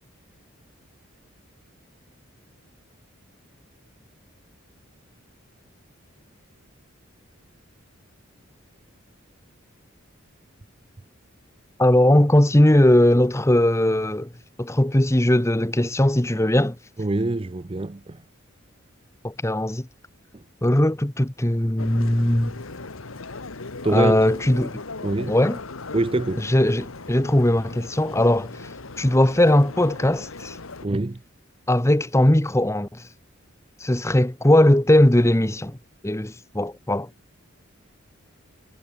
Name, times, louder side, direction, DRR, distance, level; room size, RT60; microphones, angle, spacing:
voice 1, 11.8-14.3 14.6-16.8 19.2-19.9 20.6-22.6 23.9-24.8 25.3-25.6 26.4-28.7 29.0-30.6 31.7-33.0 33.8-35.8 36.0-37.1, left 1 dB, 15° left, 1.0 m, -19 dB
voice 2, 17.0-18.2 20.3-20.4 23.8-24.2 25.0-25.4 25.9-26.5 30.8-31.2, right 2 dB, 25° right, 0.5 m, -25 dB
sound 1, 21.8-30.9, left 3 dB, 85° left, 1.5 m, -38 dB
head